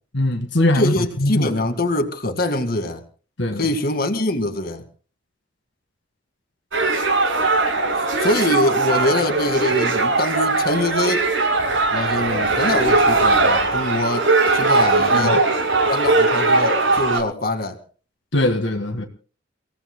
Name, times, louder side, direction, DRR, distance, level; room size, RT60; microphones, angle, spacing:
voice 1, 0.1-1.5 3.4-3.7 15.1-15.3 18.3-19.0, left 1 dB, 70° left, 4 dB, 1.8 m, -21 dB
voice 2, 0.7-3.0 3.5-4.8 8.2-11.3 11.9-15.5 15.8-17.8, left 1 dB, 50° left, 7 dB, 2.0 m, -23 dB
sound 1, 6.7-17.2, right 3 dB, 85° right, 7.8 m, -19 dB
30.0 x 17.5 x 2.2 m, 0.39 s
head